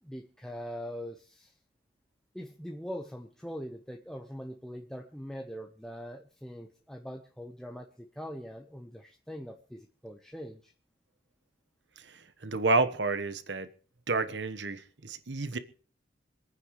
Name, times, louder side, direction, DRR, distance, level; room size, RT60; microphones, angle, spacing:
voice 1, 0.0-1.5 2.3-10.7, equal, 5° left, 0.9 m, -42 dB
voice 2, 12.4-13.7 14.1-15.6, right 3 dB, 70° right, 1.2 m, -29 dB
26.0 x 9.4 x 3.1 m
head